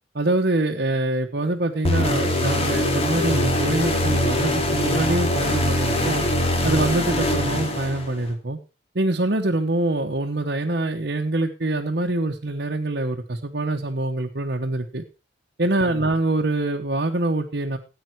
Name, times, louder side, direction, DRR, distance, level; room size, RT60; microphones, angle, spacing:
voice 1, 0.1-6.2 6.6-8.6 8.9-15.0 15.6-17.8, right 2 dB, 60° right, 1 dB, 1.1 m, -24 dB
sound 1, 1.8-8.3, left 1 dB, 35° left, 2.4 m, -22 dB
14.0 x 9.1 x 4.6 m, 0.31 s
head